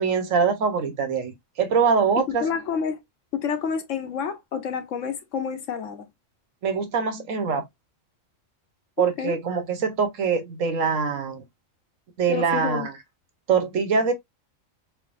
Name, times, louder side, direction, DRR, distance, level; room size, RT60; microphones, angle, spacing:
voice 1, 0.0-2.4 6.6-7.6 9.0-11.4 12.2-12.9 13.5-14.1, right 5 dB, 80° right, 1.4 m, -23 dB
voice 2, 2.2-3.0 3.3-6.1 9.0-9.4 12.3-12.9, left 6 dB, 70° left, 1.2 m, -29 dB
3.9 x 3.5 x 2.5 m
omnidirectional pair, 1.4 m